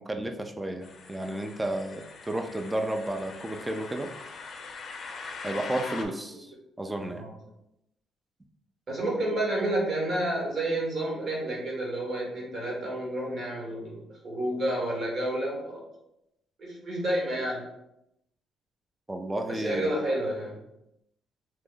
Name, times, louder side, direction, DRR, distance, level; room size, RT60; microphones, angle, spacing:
voice 1, 0.0-4.1 5.4-7.2 19.1-20.0, right 1 dB, 15° right, 5 dB, 0.5 m, -32 dB
sound 1, 0.8-6.1, left 4 dB, 55° left, 0.5 m, -42 dB
voice 2, 7.0-7.3 8.9-15.8 16.6-17.6 19.5-20.6, right 1 dB, 55° right, -1 dB, 1.3 m, -30 dB
3.0 x 2.5 x 3.8 m, 0.82 s
cardioid pair, 90°, 0 cm